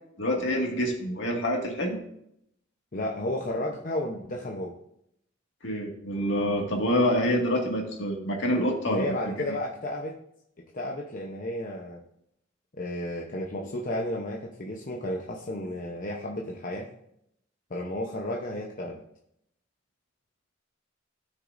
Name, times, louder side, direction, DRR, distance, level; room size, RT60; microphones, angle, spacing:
voice 1, 0.2-2.0 5.6-9.1 9.5-9.6, equal, 65° left, 0 dB, 2.1 m, -26 dB
voice 2, 2.9-4.7 8.9-10.1 10.7-12.0 12.8-16.9 17.7-19.0, left 1 dB, 45° left, -1 dB, 0.9 m, -32 dB
15.5 x 6.4 x 2.6 m, 0.75 s
head